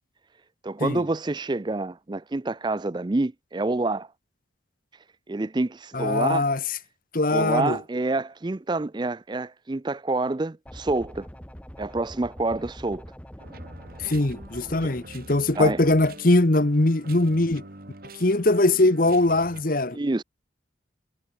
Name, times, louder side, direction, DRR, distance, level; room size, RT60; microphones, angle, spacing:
voice 1, 0.6-4.1 5.3-6.4 7.3-11.3 11.8-13.1 15.6-15.8 19.9-20.2, right 2 dB, 25° right, 0.4 m, -27 dB
voice 2, 5.9-6.6 7.1-7.8 14.0-17.6 18.2-20.0, left 2 dB, 45° left, 1.2 m, -21 dB
sound 1, 10.7-15.0, equal, 5° left, 2.2 m, -43 dB
sound 2, 13.4-19.6, right 2 dB, 50° right, 2.4 m, -45 dB
head